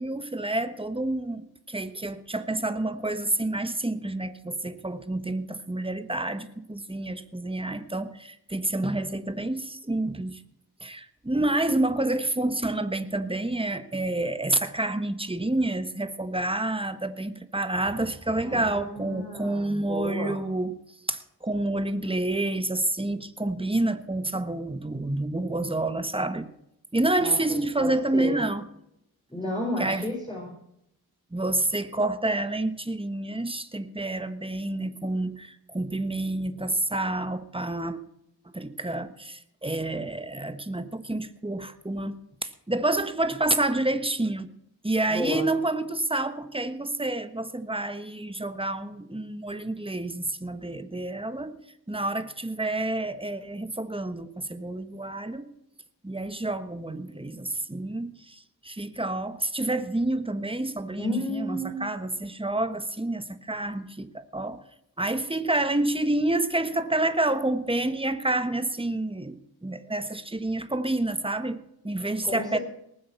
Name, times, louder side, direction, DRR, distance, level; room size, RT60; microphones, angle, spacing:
voice 1, 0.0-10.4 10.8-20.8 21.1-26.5 26.9-28.6 29.8-30.0 31.3-38.0 38.5-42.2 42.4-44.5 44.8-51.6 51.9-55.5 56.0-64.6 65.0-72.6, right 2 dB, 15° right, 10 dB, 1.3 m, -28 dB
voice 2, 18.4-20.4 27.2-28.4 29.3-30.5 45.1-45.5 61.0-61.9 72.2-72.6, left 1 dB, 10° left, -3 dB, 4.7 m, -32 dB
19.5 x 7.4 x 7.3 m, 0.77 s
wide cardioid pair, 50°, 39 cm